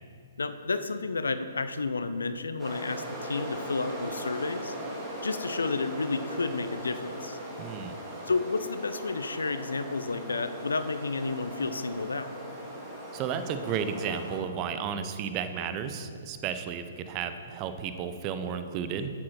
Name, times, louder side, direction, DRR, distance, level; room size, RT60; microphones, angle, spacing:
voice 1, 0.4-4.7 5.2-7.4 8.3-12.4, left 3 dB, 75° left, 11 dB, 0.5 m, -31 dB
sound 1, 2.6-14.4, equal, 15° right, 2.0 m, -39 dB
voice 2, 7.6-8.0 13.1-19.1, right 7 dB, 30° right, 10 dB, 0.7 m, -33 dB
8.6 x 7.5 x 4.4 m, 2.2 s
figure-of-eight pair, 125°, 0 cm